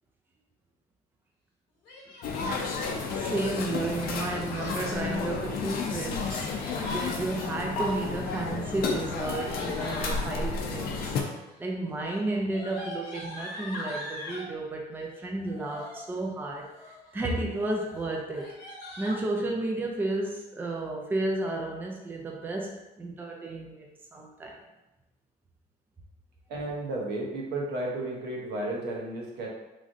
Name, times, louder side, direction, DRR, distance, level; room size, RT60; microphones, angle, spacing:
Yell, 1.8-2.6 4.0-4.9 6.1-7.2 8.5-10.3 11.1-11.5 11.8-14.5 15.4-16.0 16.5-17.1 17.5-17.6 17.9-18.0 18.3-19.2, left 1 dB, 90° left, 0.9 m, -40 dB
sound 1, 2.2-11.2, left 4 dB, 60° left, 0.5 m, -32 dB
voice 1, 3.2-11.1 11.6-18.5 19.0-24.6, right 2 dB, 10° right, 0 dB, 0.4 m, -32 dB
voice 2, 26.5-29.5, right 2 dB, 75° right, -2 dB, 0.8 m, -33 dB
3.1 x 2.5 x 2.5 m, 0.99 s
cardioid pair, 110°, 17 cm